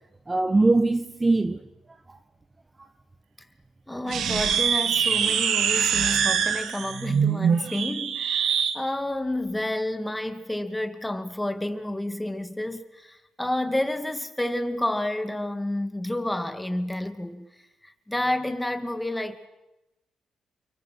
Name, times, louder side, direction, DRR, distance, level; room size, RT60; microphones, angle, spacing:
voice 1, 0.3-2.2 2.8-2.9, right 2 dB, 20° right, 1.0 m, -23 dB
voice 2, 3.9-17.5 17.8-19.5, left 1 dB, 10° left, 2.2 m, -30 dB
sound 1, 4.1-8.8, right 7 dB, 70° right, 2.1 m, -24 dB
30.0 x 25.0 x 6.2 m
cardioid pair, 90°, 0 cm